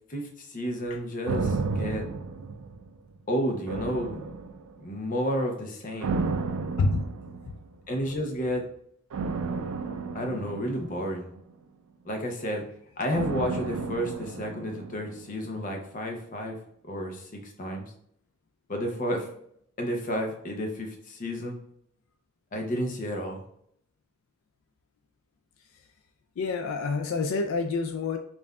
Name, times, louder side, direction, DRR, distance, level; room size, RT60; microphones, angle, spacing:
voice 1, 0.1-2.0 3.3-4.3 4.8-6.2 7.9-8.7 10.1-11.3 12.1-12.6 13.0-16.6 16.9-17.9 18.7-19.3 19.8-21.6 22.5-23.4, equal, 40° left, 2 dB, 0.6 m, -31 dB
sound 1, 1.3-3.2 3.7-4.9 6.0-7.7 9.1-11.5 13.1-15.3 15.6-15.7, right 4 dB, 80° right, 0.4 m, -32 dB
voice 2, 26.4-28.2, left 3 dB, 75° left, 6 dB, 0.3 m, -27 dB
5.3 x 2.5 x 2.3 m, 0.70 s
head